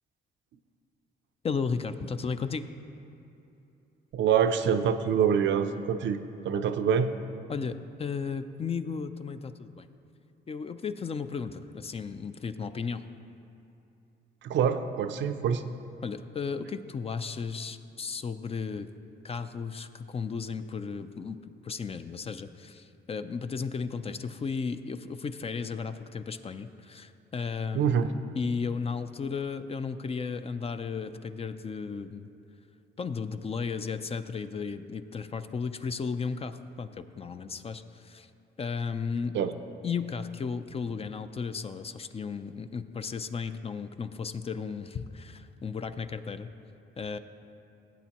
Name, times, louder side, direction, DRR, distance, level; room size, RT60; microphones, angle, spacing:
voice 1, 1.4-2.7 7.5-9.9 10.5-13.0 16.0-18.9 19.2-21.4 21.6-32.3 33.0-38.3 38.6-39.3 39.8-46.5 47.0-47.2, left 5 dB, 30° left, 10 dB, 0.4 m, -34 dB
voice 2, 4.1-6.2 6.4-7.1 14.4-15.6 27.7-28.1 39.3-39.5, right 7 dB, 70° right, 8 dB, 0.5 m, -25 dB
16.5 x 8.2 x 2.9 m, 2.9 s
cardioid pair, 90°, 20 cm